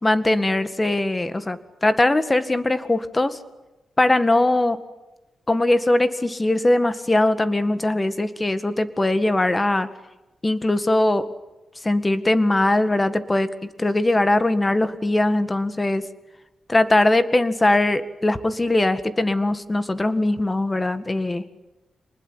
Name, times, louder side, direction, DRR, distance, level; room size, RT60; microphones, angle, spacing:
voice 1, 0.0-3.4 4.0-4.8 5.5-9.9 10.4-11.3 11.8-13.5 13.8-16.0 16.7-21.4, left 2 dB, 20° left, 11 dB, 1.9 m, -20 dB
27.5 x 20.0 x 9.0 m, 1.0 s
cardioid pair, 105°, 0 cm